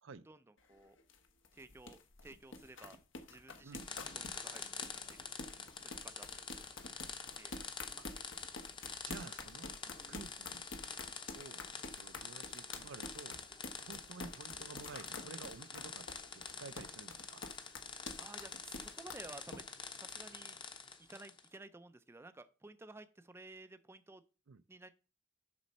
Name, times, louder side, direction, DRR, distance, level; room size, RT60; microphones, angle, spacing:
sound 1, 0.6-19.6, left 3 dB, 80° left, 1.1 m, -49 dB
voice 1, 1.5-3.0 3.3-5.2 5.8-6.4 6.8-7.1 7.4-7.6 18.2-19.6 20.0-20.6 21.0-24.2 24.7-24.9, right 2 dB, 15° right, 0.4 m, -54 dB
sound 2, 3.7-21.5, left 5 dB, 25° left, 0.8 m, -47 dB
voice 2, 9.0-9.8 10.1-10.6 11.3-11.6 11.9-13.4 13.8-17.4 24.5-24.6, right 4 dB, 75° right, 0.5 m, -51 dB
7.3 x 6.2 x 4.2 m
head